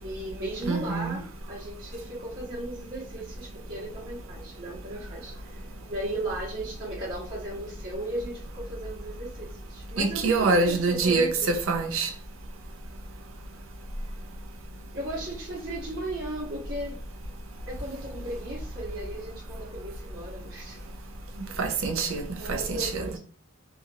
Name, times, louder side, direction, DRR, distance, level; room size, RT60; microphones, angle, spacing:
voice 1, 0.0-5.6 5.9-11.5 14.9-17.0 17.7-20.8 22.4-23.2, right 1 dB, 45° right, 1.1 m, -36 dB
voice 2, 0.7-1.1 10.0-12.1 21.6-23.0, right 3 dB, 70° right, 0.5 m, -25 dB
2.8 x 2.5 x 2.7 m
head